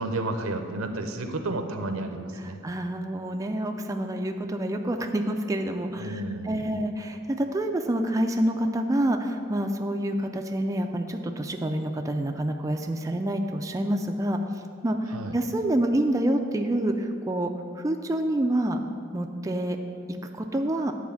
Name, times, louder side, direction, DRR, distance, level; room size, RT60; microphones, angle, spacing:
voice 1, 0.0-2.6 5.9-6.8 15.1-15.4, right 2 dB, 85° right, 7 dB, 0.7 m, -32 dB
voice 2, 2.4-14.4 14.8-18.8 19.1-19.8 20.4-20.9, right 1 dB, 15° right, 4 dB, 0.3 m, -27 dB
9.5 x 4.2 x 7.0 m, 2.3 s
head